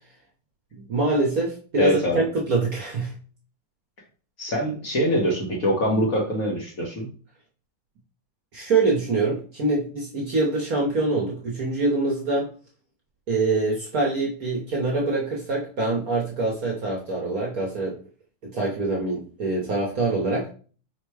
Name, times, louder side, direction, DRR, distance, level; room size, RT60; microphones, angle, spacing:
voice 1, 0.7-3.1 8.5-12.5 13.3-18.0 18.4-20.5, right 3 dB, 55° right, -3 dB, 1.1 m, -25 dB
voice 2, 1.8-2.2 4.4-7.1, equal, 50° left, -2 dB, 1.2 m, -23 dB
4.5 x 2.2 x 4.7 m, 0.40 s
omnidirectional pair, 2.3 m